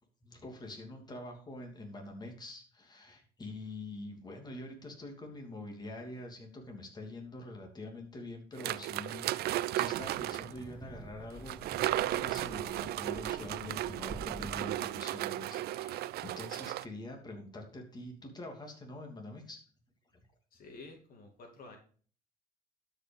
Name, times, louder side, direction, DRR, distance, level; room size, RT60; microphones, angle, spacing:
voice 1, 0.2-19.6 20.1-20.2, left 1 dB, 25° left, 2 dB, 2.8 m, -45 dB
sound 1, 8.6-10.6 11.5-16.8, right 14 dB, 70° right, 0.5 m, -35 dB
Wind, 9.8-14.9, right 1 dB, 10° right, 1.2 m, -49 dB
voice 2, 20.5-21.8, left 3 dB, 60° left, 3 dB, 2.6 m, -50 dB
12.5 x 5.6 x 5.5 m, 0.43 s
cardioid pair, 110°, 17 cm